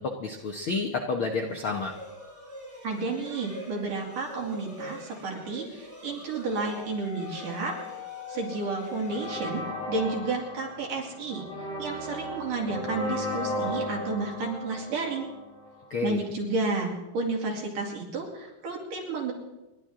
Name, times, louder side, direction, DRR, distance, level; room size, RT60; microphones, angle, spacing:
voice 1, 0.0-1.9 15.9-16.2, left 4 dB, 70° left, 2 dB, 1.2 m, -30 dB
sound 1, 1.4-10.1, equal, 5° left, 6.8 m, -45 dB
voice 2, 2.8-7.8 8.3-11.4 11.8-15.3 16.0-19.3, right 3 dB, 70° right, -1 dB, 4.2 m, -31 dB
Wind instrument woodwind instrument, 6.5-10.7, left 18 dB, 55° left, 3.2 m, -43 dB
sound 2, 9.1-15.8, left 1 dB, 40° left, 3.5 m, -35 dB
29.0 x 12.0 x 3.7 m, 1.0 s
omnidirectional pair, 3.9 m